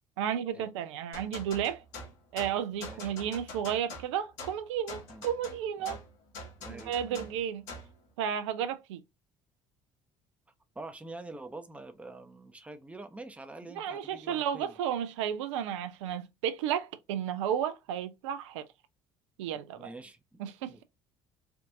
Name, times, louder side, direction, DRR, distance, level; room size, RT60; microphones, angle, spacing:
voice 1, 0.2-1.8 2.3-6.0 6.7-7.7 8.2-9.0 13.8-18.6 19.4-19.9 20.4-20.7, right 9 dB, 75° right, 0.4 m, -33 dB
sound 1, 1.1-8.0, left 2 dB, 70° left, 1.1 m, -45 dB
voice 2, 2.8-3.2 5.1-5.2 5.8-6.0 6.6-7.3 10.7-14.7 19.8-20.4 20.7-20.8, right 2 dB, 10° right, 0.6 m, -46 dB
3.4 x 2.5 x 2.5 m
hypercardioid pair, 55°, 16 cm